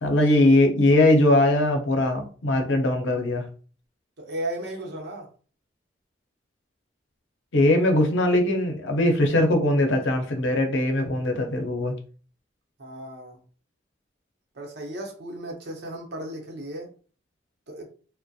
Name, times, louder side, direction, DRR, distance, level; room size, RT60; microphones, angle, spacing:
voice 1, 0.0-3.5 7.5-11.9, left 1 dB, 90° left, 4 dB, 0.6 m, -21 dB
voice 2, 4.2-5.3 12.8-13.4 14.5-16.9 17.7-17.9, right 1 dB, 60° right, 1 dB, 0.7 m, -35 dB
2.3 x 2.1 x 2.6 m, 0.39 s
head